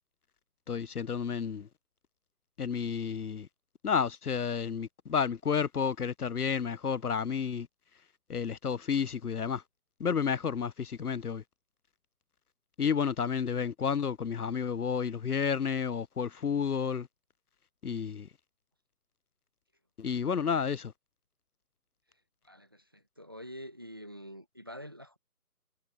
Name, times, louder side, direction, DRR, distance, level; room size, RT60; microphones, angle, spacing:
voice 1, 0.7-1.7 2.6-3.5 3.8-7.7 8.3-9.6 10.0-11.4 12.8-17.1 17.8-18.3 20.0-20.9, left 6 dB, 70° left, 0.8 m, -31 dB
voice 2, 22.4-25.2, equal, 15° right, 1.1 m, -46 dB
figure-of-eight pair, 170°, 47 cm